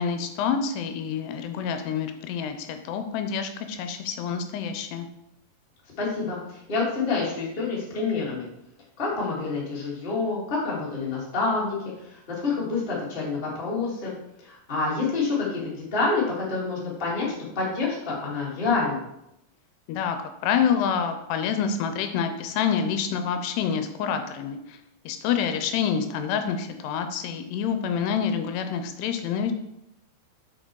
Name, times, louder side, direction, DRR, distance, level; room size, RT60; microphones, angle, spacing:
voice 1, 0.0-5.1 19.9-20.2 20.4-24.8 25.1-29.5, left 7 dB, 85° left, 7 dB, 2.7 m, -27 dB
voice 2, 6.0-8.5 9.0-11.8 12.0-14.1 14.4-19.0, left 4 dB, 25° left, -6 dB, 1.3 m, -27 dB
6.6 x 5.6 x 4.6 m, 0.82 s
omnidirectional pair, 4.8 m